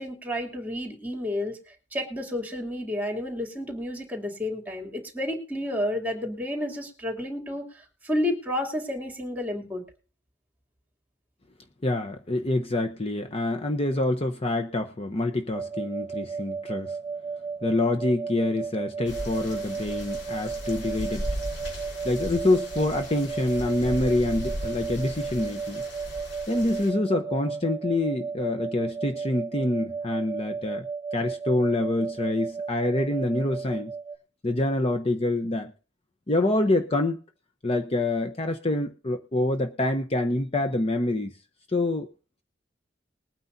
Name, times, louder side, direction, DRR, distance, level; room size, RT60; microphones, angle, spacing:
voice 1, 0.0-9.8, left 1 dB, 10° right, 3 dB, 3.2 m, -31 dB
voice 2, 11.8-17.0 17.6-21.3 22.0-25.8 26.5-30.9 31.1-33.9 34.4-35.7 36.3-37.2 37.6-41.3 41.7-42.1, left 2 dB, 35° left, 6 dB, 0.9 m, -26 dB
sound 1, 15.5-34.2, right 5 dB, 30° right, 1.2 m, -34 dB
sound 2, 19.0-26.9, equal, 75° left, 6.2 m, -37 dB
21.0 x 9.5 x 2.7 m, 0.36 s
head